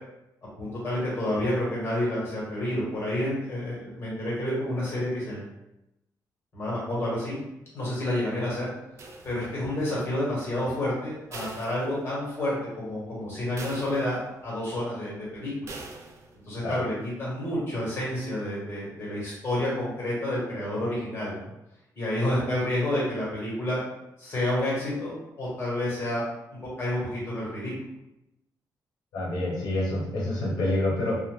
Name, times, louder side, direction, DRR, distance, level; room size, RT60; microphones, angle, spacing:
voice 1, 0.6-5.5 6.5-7.3 7.7-8.7 9.2-15.5 16.4-21.5 21.9-23.8 24.2-26.2 26.6-27.7, left 1 dB, 35° left, -6 dB, 1.3 m, -29 dB
sound 1, 9.0-9.8 11.3-12.4 12.8-12.9 13.6-14.5 15.7-16.4, right 3 dB, 45° right, 0.4 m, -43 dB
voice 2, 29.1-31.2, left 1 dB, 70° left, -3 dB, 0.7 m, -27 dB
2.4 x 2.2 x 3.1 m, 0.89 s
cardioid pair, 155°, 7 cm